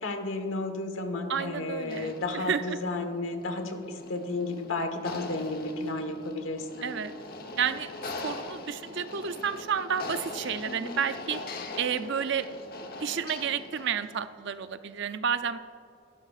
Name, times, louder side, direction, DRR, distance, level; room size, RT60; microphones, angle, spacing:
voice 1, 0.0-6.9 10.7-11.0, left 2 dB, 65° left, 6 dB, 1.3 m, -33 dB
voice 2, 1.3-2.8 6.8-7.1 7.6-7.9 8.2-11.4 11.8-12.5 13.0-15.6, right 7 dB, 55° right, 11 dB, 0.5 m, -31 dB
sound 1, 1.8-14.2, left 2 dB, 45° left, 1.0 m, -41 dB
22.5 x 12.5 x 2.5 m, 2.6 s
head